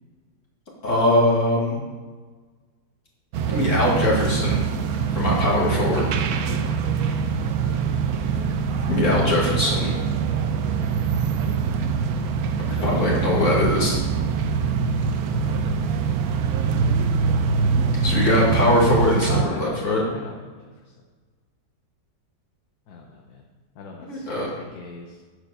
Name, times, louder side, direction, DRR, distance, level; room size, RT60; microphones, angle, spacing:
voice 1, 0.8-1.8 3.5-4.7 5.1-6.2 8.9-9.9 12.8-14.0 18.0-20.0 24.1-24.5, left 1 dB, 45° left, -5 dB, 2.6 m, -21 dB
sound 1, 3.3-19.4, right 5 dB, 65° right, 1.0 m, -24 dB
voice 2, 12.6-13.0 15.4-15.9 19.3-20.4 22.9-23.4 23.8-25.2, left 4 dB, 65° left, 1 dB, 1.3 m, -39 dB
9.6 x 5.0 x 6.6 m, 1.4 s
omnidirectional pair, 1.9 m